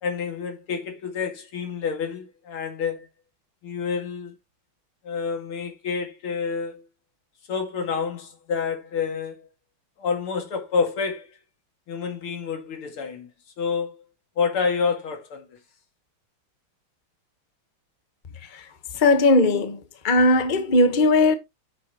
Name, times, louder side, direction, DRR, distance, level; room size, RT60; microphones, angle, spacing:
voice 1, 0.0-3.1 3.6-4.3 5.0-6.8 7.5-9.5 10.0-11.3 11.9-13.3 13.6-14.0 14.4-15.6, left 5 dB, 90° left, 2.9 m, -28 dB
voice 2, 18.9-21.3, left 2 dB, 30° left, 1.1 m, -19 dB
9.3 x 7.1 x 2.9 m
omnidirectional pair, 2.3 m